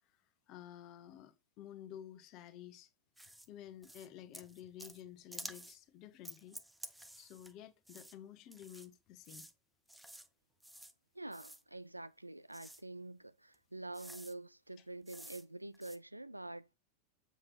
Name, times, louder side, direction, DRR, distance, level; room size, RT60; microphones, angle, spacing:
voice 1, 0.5-2.9 3.5-6.6 7.2-9.5, left 11 dB, 40° left, 1.0 m, -52 dB
sound 1, 3.2-3.5 3.8-4.1 4.3-5.0 5.3-5.8 6.2-7.5 7.9-8.1 8.5-8.9 9.2-9.5 9.9-10.3 10.6-10.9 11.3-11.6 12.5-12.8 13.5-13.6 13.9-14.3 15.1-15.4 15.7-16.0, right 1 dB, 5° right, 0.7 m, -51 dB
voice 2, 11.1-16.7, right 2 dB, 85° right, 0.3 m, -47 dB
7.6 x 5.9 x 3.1 m
figure-of-eight pair, 90°, 0 cm